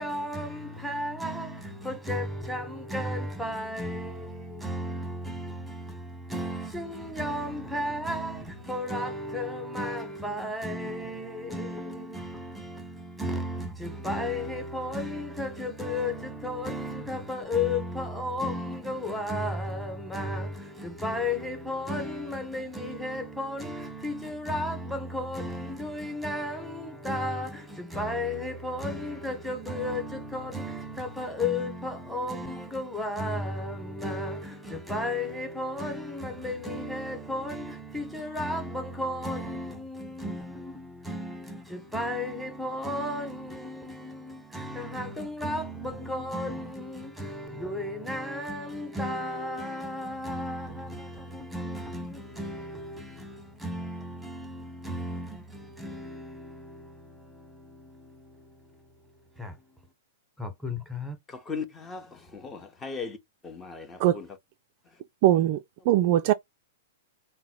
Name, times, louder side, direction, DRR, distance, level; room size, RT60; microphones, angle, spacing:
voice 1, 0.0-58.9 59.4-59.6 60.4-61.2, left 1 dB, ahead, 1.1 m, -34 dB
voice 2, 61.3-63.2 63.4-64.2, left 5 dB, 15° left, 0.7 m, -38 dB
voice 3, 65.2-65.6 65.9-66.3, right 13 dB, 40° right, 0.3 m, -20 dB
3.7 x 2.1 x 4.4 m
figure-of-eight pair, 105°, 0 cm